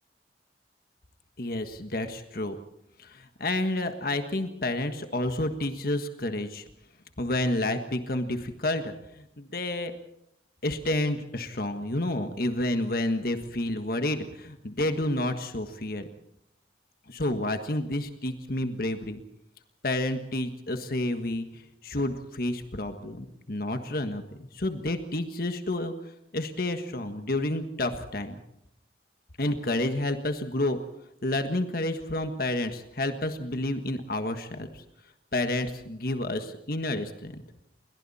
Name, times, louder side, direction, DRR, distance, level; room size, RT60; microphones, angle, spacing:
voice 1, 1.4-2.6 3.0-6.6 7.2-9.9 10.6-16.1 17.1-19.2 19.8-24.2 24.5-25.9 26.3-28.4 29.4-30.8 31.2-34.8 35.3-37.4, left 1 dB, 55° left, 7 dB, 1.6 m, -30 dB
29.5 x 22.0 x 4.3 m, 0.80 s
head